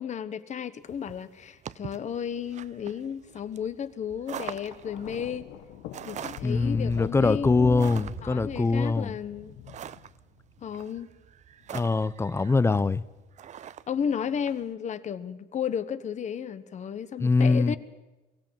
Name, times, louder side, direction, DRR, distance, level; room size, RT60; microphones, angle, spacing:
voice 1, 0.0-5.5 6.1-9.5 10.6-11.1 13.9-17.8, left 8 dB, 45° left, 1.1 m, -33 dB
sound 1, 0.9-14.6, right 9 dB, 45° right, 0.6 m, -43 dB
Thunder, 4.3-10.6 11.6-11.9, left 13 dB, 85° left, 0.9 m, -42 dB
voice 2, 6.4-9.2 11.7-13.0 17.2-17.8, left 3 dB, 15° left, 0.6 m, -23 dB
22.5 x 16.5 x 7.6 m
cardioid pair, 110°, 17 cm